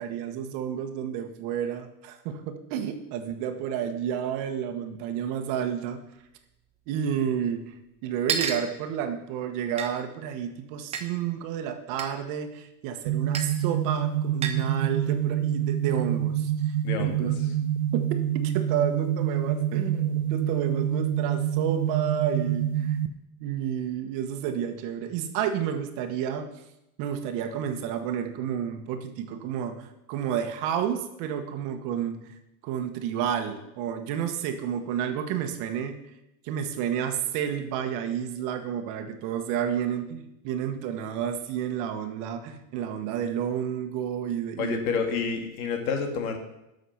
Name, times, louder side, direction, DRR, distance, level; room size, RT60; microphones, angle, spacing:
voice 1, 0.0-6.0 6.9-7.8 8.0-17.4 17.9-18.1 18.4-23.0 23.4-26.5 27.0-36.0 36.4-44.8, right 9 dB, 45° right, 7 dB, 1.2 m, -31 dB
sound 1, 6.3-6.4 6.5-6.6 7.5-7.6 8.3-8.7 9.8-9.9 10.9-11.0 12.0-12.1 13.3-13.5 14.4-14.7, right 6 dB, 15° right, 0.7 m, -29 dB
sound 2, 13.1-23.1, right 10 dB, 75° right, 1.0 m, -27 dB
voice 2, 16.8-17.3 44.6-46.4, left 5 dB, 85° left, 4 dB, 2.2 m, -29 dB
11.5 x 6.5 x 5.8 m, 0.89 s
supercardioid pair, 160°, 43 cm